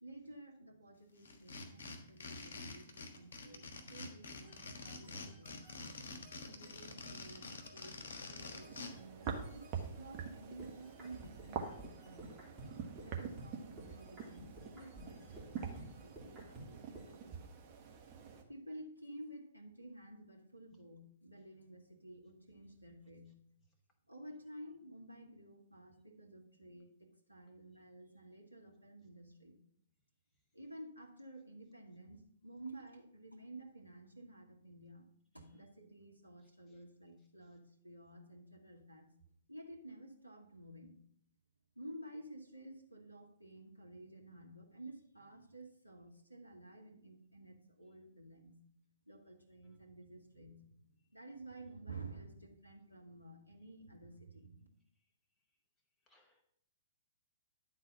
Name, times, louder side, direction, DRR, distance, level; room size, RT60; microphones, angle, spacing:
voice 1, 0.0-5.6 6.4-12.4 13.0-17.4 18.5-23.3 24.1-29.6 30.5-35.1 35.3-39.1 39.5-40.9 41.7-48.6 49.1-50.6 51.1-54.7, right 1 dB, 90° right, 1 dB, 1.4 m, -53 dB
sound 1, 1.2-8.9, left 3 dB, 55° left, 1.3 m, -47 dB
sound 2, 4.4-9.8 10.6-17.2, right 1 dB, 15° right, 3.1 m, -56 dB
sound 3, 8.4-18.4, right 6 dB, 30° right, 1.2 m, -46 dB
voice 2, 36.4-36.8 56.1-56.4, left 1 dB, 10° left, 2 dB, 0.9 m, -73 dB
11.0 x 4.1 x 5.6 m, 0.68 s
figure-of-eight pair, 115°, 0 cm